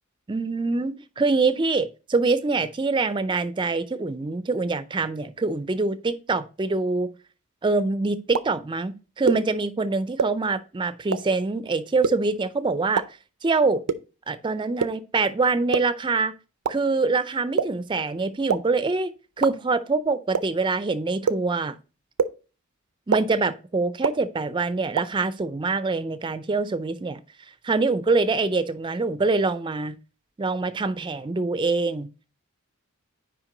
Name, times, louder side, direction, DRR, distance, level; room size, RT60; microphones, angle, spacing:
voice 1, 0.3-7.1 7.6-13.0 13.4-13.8 14.3-16.3 16.7-21.8 23.1-27.2 27.6-30.0 30.4-32.3, right 3 dB, 20° right, 0.4 m, -25 dB
sound 1, 8.3-8.4 9.3-9.4 10.2-10.3 11.1-11.2 12.0-12.1 13.0-13.1 13.9-14.0 14.8-14.9 15.7-15.8 16.6-16.7 17.6-17.7 18.5-18.6 19.4-19.5 20.3-20.4 21.3-21.4 22.2-22.3 23.1-23.2 24.0-24.1 25.0-25.1, right 6 dB, 90° right, 0.5 m, -21 dB
5.8 x 5.0 x 3.8 m
head